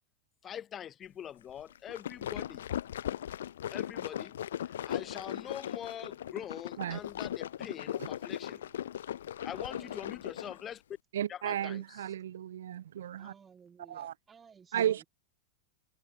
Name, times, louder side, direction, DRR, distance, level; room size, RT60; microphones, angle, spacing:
voice 1, 0.4-2.7 3.7-8.6 9.4-10.8 11.3-12.0, left 9 dB, 25° left, 0.6 m, -44 dB
sound 1, 1.7-10.6, left 10 dB, 60° left, 1.3 m, -38 dB
voice 2, 9.6-10.0 13.2-15.1, right 6 dB, 20° right, 5.2 m, -57 dB
voice 3, 11.1-13.3 13.9-14.1 14.7-15.0, right 11 dB, 60° right, 0.4 m, -34 dB
figure-of-eight pair, 90°, 0 cm